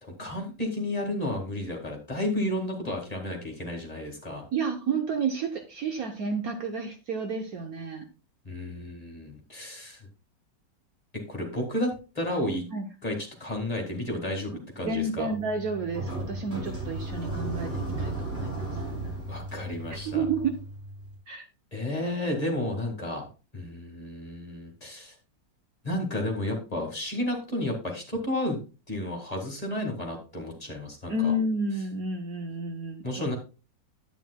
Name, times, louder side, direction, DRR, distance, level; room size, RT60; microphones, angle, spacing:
voice 1, 0.0-4.4 8.5-10.1 11.3-12.6 13.0-15.3 19.3-20.2 21.7-23.2 23.5-25.2 25.8-28.6 28.9-31.3 33.0-33.4, left 1 dB, 20° left, 1 dB, 1.9 m, -32 dB
voice 2, 4.5-8.1 12.7-12.8 14.8-18.6 20.0-20.5 21.3-21.5 31.1-33.0, right 3 dB, 60° right, 5 dB, 1.2 m, -30 dB
sound 1, 15.3-21.2, right 2 dB, 35° right, 4.1 m, -35 dB
10.5 x 9.0 x 2.2 m, 0.31 s
omnidirectional pair, 1.9 m